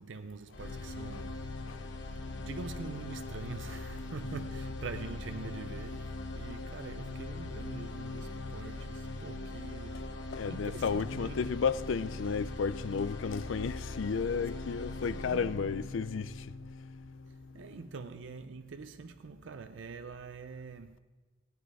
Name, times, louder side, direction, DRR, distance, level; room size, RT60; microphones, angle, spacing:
voice 1, 0.0-1.5 2.3-10.2 10.5-11.5 15.1-15.8 17.2-21.0, right 4 dB, 80° right, 0.5 m, -45 dB
sound 1, 0.5-18.5, left 2 dB, 70° left, 1.0 m, -41 dB
voice 2, 10.3-16.5, left 5 dB, 90° left, 0.4 m, -33 dB
16.0 x 9.4 x 4.8 m
head